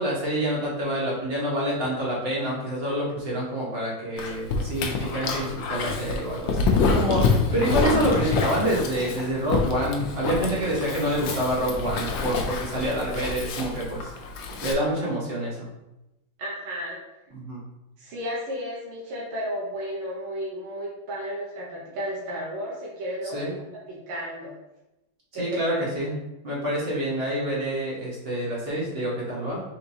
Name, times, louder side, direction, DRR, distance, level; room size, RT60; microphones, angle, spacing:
voice 1, 0.0-14.1 14.6-15.7 17.3-17.6 23.3-23.5 25.3-26.2 26.4-29.6, right 1 dB, 35° right, -5 dB, 1.2 m, -27 dB
Dog, 4.2-14.7, left 4 dB, 75° left, 1.3 m, -27 dB
voice 2, 16.4-17.0 18.0-24.5 25.3-25.9, equal, 90° right, -4 dB, 1.8 m, -33 dB
4.5 x 3.7 x 2.7 m, 0.93 s
omnidirectional pair, 2.2 m